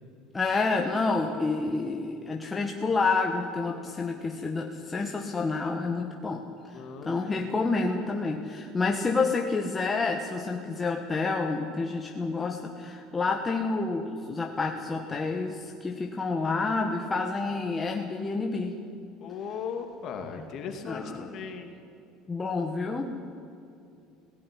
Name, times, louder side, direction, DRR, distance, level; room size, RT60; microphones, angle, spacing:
voice 1, 0.3-6.4 6.7-18.7 20.8-21.3 22.3-23.1, left 3 dB, 15° left, 2 dB, 1.1 m, -29 dB
voice 2, 6.7-7.5 19.2-21.7, left 6 dB, 40° left, 4 dB, 2.4 m, -38 dB
17.0 x 16.0 x 9.9 m, 2.6 s
cardioid pair, 170°, 0 cm